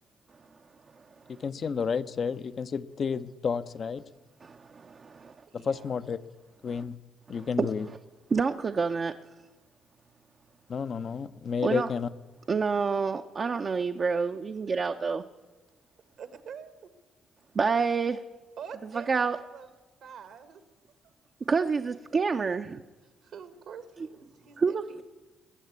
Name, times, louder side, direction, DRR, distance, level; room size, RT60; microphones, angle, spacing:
voice 1, 1.3-4.0 5.5-6.2 6.6-7.0 7.3-7.9 10.7-12.1, left 6 dB, 55° left, 13 dB, 0.7 m, -31 dB
voice 2, 5.3-6.1 16.2-16.9 18.6-19.7 20.0-20.6 21.6-21.7 23.2-25.0, right 7 dB, 70° right, 11 dB, 1.4 m, -46 dB
voice 3, 7.4-7.7 8.3-9.1 11.6-11.9 12.5-15.2 17.6-18.2 19.1-19.4 21.5-22.8 24.6-25.0, right 5 dB, 45° right, 6 dB, 0.6 m, -27 dB
21.5 x 7.4 x 8.3 m, 1.2 s
supercardioid pair, 55°, 0 cm